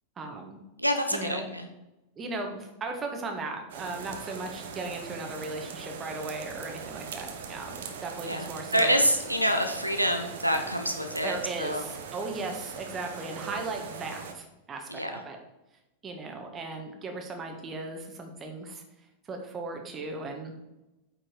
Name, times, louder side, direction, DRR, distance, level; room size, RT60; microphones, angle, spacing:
voice 1, 0.2-0.6 1.1-1.5 2.2-8.9 11.2-15.4 16.0-18.8 19.3-20.5, right 3 dB, 20° right, 3 dB, 1.6 m, -37 dB
voice 2, 0.8-1.7 8.2-11.8 14.9-15.1, equal, 90° right, 6 dB, 0.7 m, -27 dB
sound 1, 3.7-14.3, right 6 dB, 60° right, 1.0 m, -41 dB
8.8 x 4.9 x 4.7 m, 0.99 s
figure-of-eight pair, 90°, 0 cm